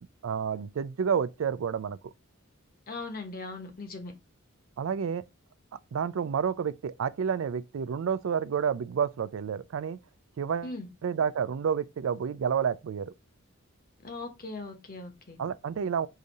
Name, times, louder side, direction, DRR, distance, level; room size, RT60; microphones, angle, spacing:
voice 1, 0.2-2.1 4.8-5.2 5.9-10.0 10.4-10.7 11.0-13.1 15.4-16.1, right 7 dB, 70° right, 0.4 m, -29 dB
voice 2, 2.9-4.1 10.6-10.9 14.0-15.4, left 3 dB, 45° left, 1.0 m, -39 dB
4.9 x 2.7 x 4.0 m
head